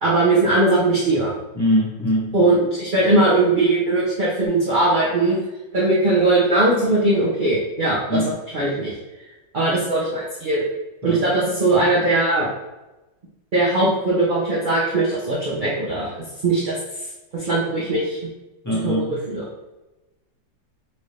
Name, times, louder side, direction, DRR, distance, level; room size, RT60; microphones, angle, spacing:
voice 1, 0.0-1.3 2.3-5.4 5.7-8.2 8.5-8.9 9.5-10.6 11.0-12.5 13.5-16.1 16.4-16.8 17.3-18.2 18.8-19.4, right 2 dB, 40° right, -7 dB, 0.8 m, -19 dB
voice 2, 1.5-2.3 8.1-8.4 11.0-11.2 18.6-19.2, left 1 dB, 15° left, -6 dB, 0.6 m, -22 dB
6.0 x 2.7 x 3.3 m, 1.0 s
omnidirectional pair, 2.0 m